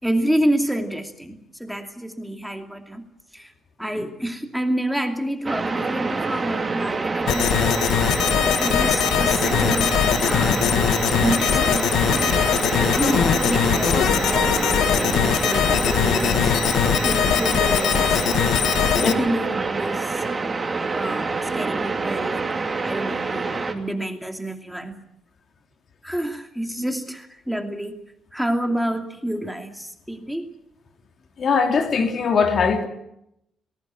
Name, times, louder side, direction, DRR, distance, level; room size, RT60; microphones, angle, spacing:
voice 1, 0.0-3.1 3.3-3.5 3.8-7.9 8.6-10.0 10.2-10.7 11.2-11.9 12.3-12.7 13.0-16.5 17.0-18.2 19.0-20.2 20.9-22.5 22.8-24.9 26.0-28.0 28.3-30.5, right 1 dB, ahead, 2.6 m, -28 dB
sound 1, 5.4-23.7, right 3 dB, 25° right, 2.7 m, -26 dB
sound 2, 7.3-19.1, left 9 dB, 80° left, 1.5 m, -21 dB
voice 2, 31.4-32.9, left 5 dB, 55° left, 2.8 m, -20 dB
20.0 x 17.0 x 9.7 m
cardioid pair, 90°, 0 cm